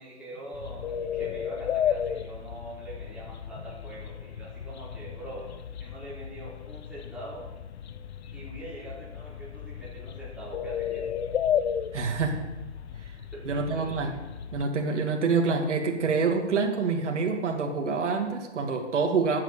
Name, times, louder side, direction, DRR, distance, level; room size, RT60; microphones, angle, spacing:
voice 1, 0.0-7.5 8.3-11.0 13.3-14.1, right 1 dB, 5° right, -8 dB, 4.4 m, -43 dB
sound 1, 0.5-14.6, left 9 dB, 60° left, 1.0 m, -34 dB
voice 2, 11.9-12.4 13.5-14.1 14.5-19.4, right 4 dB, 80° right, 3 dB, 2.5 m, -26 dB
12.0 x 9.0 x 8.4 m, 1.1 s
hypercardioid pair, 155°, 35 cm